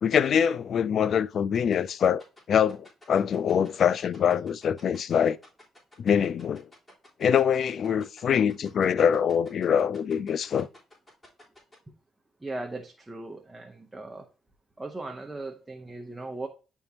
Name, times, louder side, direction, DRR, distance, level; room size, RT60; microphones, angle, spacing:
voice 1, 0.0-5.4 6.0-6.7 7.2-10.7, left 8 dB, 60° left, 0.4 m, -24 dB
sound 1, 1.5-11.8, left 1 dB, 25° left, 3.9 m, -52 dB
voice 2, 12.4-14.3 14.8-16.5, right 2 dB, 15° right, 0.9 m, -38 dB
10.5 x 3.6 x 2.8 m
cardioid pair, 90°, 0 cm